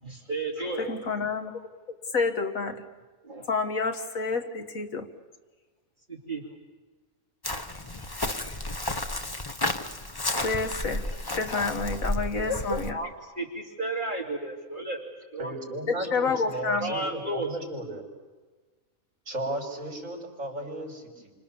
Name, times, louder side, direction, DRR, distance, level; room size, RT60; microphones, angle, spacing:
voice 1, 0.0-0.9 3.2-3.5 6.1-6.4 12.8-15.5 16.8-17.7, right 2 dB, 35° right, -1 dB, 2.8 m, -33 dB
voice 2, 0.8-1.7 2.1-2.9 3.5-5.1 8.5-8.6 10.2-11.1 11.4-13.0 16.0-17.0, left 4 dB, 65° left, 5 dB, 2.1 m, -29 dB
Chirp tweet, 7.4-12.9, left 2 dB, 20° left, 0.9 m, -32 dB
voice 3, 15.4-18.0 19.3-21.3, right 1 dB, 60° right, 1 dB, 5.2 m, -35 dB
28.5 x 26.0 x 7.2 m, 1.3 s
omnidirectional pair, 1.5 m